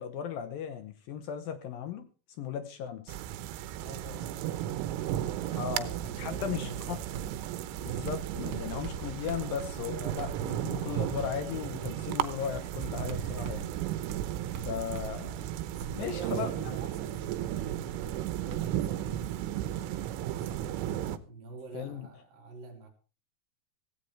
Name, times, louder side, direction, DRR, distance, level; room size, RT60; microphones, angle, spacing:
voice 1, 0.0-2.1 2.4-3.2 5.5-5.9 6.2-7.0 7.8-13.7 14.5-15.4 16.0-16.5 21.7-22.1, left 8 dB, 70° left, 2.2 m, -36 dB
sound 1, 3.1-21.2, right 12 dB, 90° right, 3.5 m, -35 dB
voice 2, 3.8-7.0 15.7-20.8 21.3-22.9, right 2 dB, 50° right, 4.5 m, -47 dB
Writing, 7.1-11.1 11.6-11.9 12.6-20.0 20.5-20.6, right 6 dB, 65° right, 2.1 m, -45 dB
17.0 x 16.5 x 3.3 m
omnidirectional pair, 5.5 m